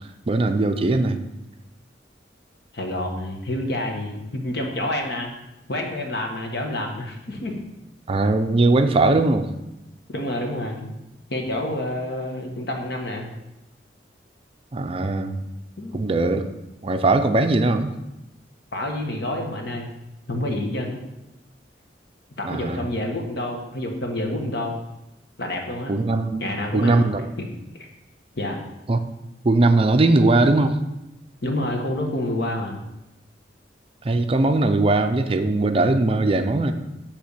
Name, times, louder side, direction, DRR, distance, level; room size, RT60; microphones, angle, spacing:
voice 1, 0.3-1.2 8.1-9.5 14.7-15.4 15.9-16.5 16.8-17.9 22.4-22.9 25.9-26.5 26.7-27.3 28.9-29.0 29.4-30.8 34.0-36.7, right 2 dB, 30° right, 8 dB, 0.5 m, -20 dB
voice 2, 2.7-5.3 5.7-7.6 10.1-10.9 11.3-13.3 15.8-16.0 18.7-19.9 20.3-21.0 22.4-24.8 25.4-25.9 26.4-27.1 28.4-28.6 31.4-32.8, left 1 dB, 65° left, 2 dB, 1.3 m, -28 dB
8.3 x 3.4 x 6.6 m, 0.93 s
head